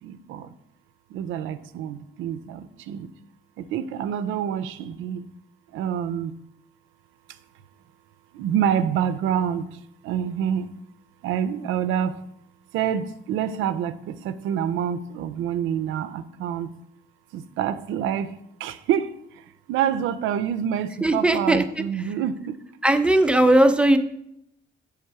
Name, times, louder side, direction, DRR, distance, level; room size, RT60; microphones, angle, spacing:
voice 1, 0.0-0.5 1.1-3.1 3.6-5.3 5.7-6.3 7.3-7.4 8.3-10.8 11.2-12.2 12.7-16.7 17.3-18.3 18.6-22.6, right 9 dB, 90° right, 12 dB, 0.4 m, -27 dB
voice 2, 21.0-21.6 22.8-24.0, right 1 dB, 5° right, 8 dB, 0.4 m, -18 dB
6.5 x 3.4 x 4.6 m, 0.77 s
cardioid pair, 90°, 20 cm